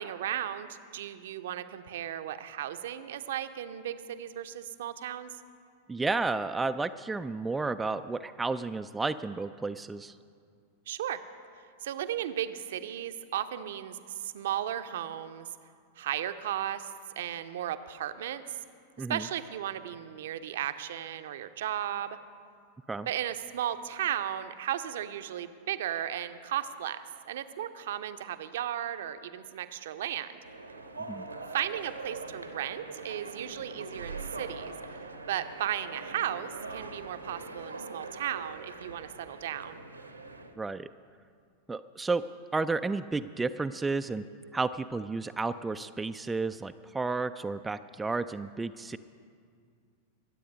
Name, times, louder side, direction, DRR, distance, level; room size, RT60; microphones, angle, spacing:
voice 1, 0.0-5.4 10.9-11.2 11.8-15.5 16.0-16.9 17.2-18.6 19.0-22.2 23.1-30.4 31.5-39.8, right 11 dB, 60° right, 11 dB, 0.6 m, -35 dB
voice 2, 5.9-10.2 19.0-19.3 22.9-23.1 31.1-31.3 40.6-40.9 41.7-42.2 42.5-44.2 44.5-49.0, right 3 dB, 10° right, 10 dB, 0.3 m, -32 dB
sound 1, 30.4-40.6, right 3 dB, 80° right, 1.0 m, -42 dB
22.0 x 8.5 x 5.3 m, 2.2 s
figure-of-eight pair, 90°, 0 cm